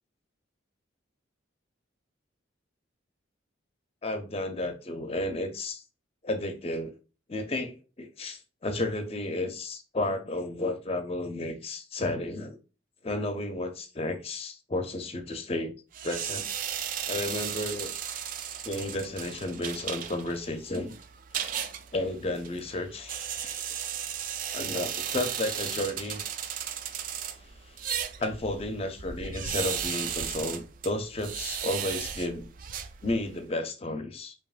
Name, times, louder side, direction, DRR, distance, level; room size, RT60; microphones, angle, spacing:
voice 1, 4.0-5.8 6.2-6.9 7.3-12.6 13.0-15.7 16.0-16.5 17.1-17.9 18.6-20.9 21.9-23.8 24.5-26.2 28.2-32.5 33.0-34.3, left 2 dB, 30° left, 0.5 m, -32 dB
sound 1, 15.9-33.4, right 8 dB, 45° right, 0.3 m, -35 dB
4.9 x 2.8 x 2.4 m
head